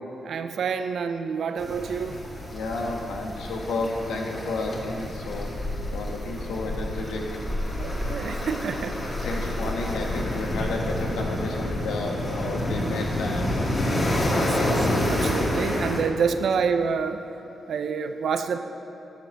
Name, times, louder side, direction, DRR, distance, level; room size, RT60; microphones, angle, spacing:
voice 1, 0.2-2.2 7.8-9.1 14.3-14.8 15.1-17.2 17.7-18.6, right 6 dB, 70° right, 9 dB, 0.5 m, -28 dB
sound 1, 1.6-16.0, left 1 dB, 40° left, 2.2 m, -28 dB
voice 2, 2.5-5.5 5.9-7.2 9.2-13.7 14.4-14.8, left 2 dB, 85° left, 1 dB, 1.3 m, -32 dB
10.5 x 6.1 x 6.4 m, 2.8 s
supercardioid pair, 50°, 0 cm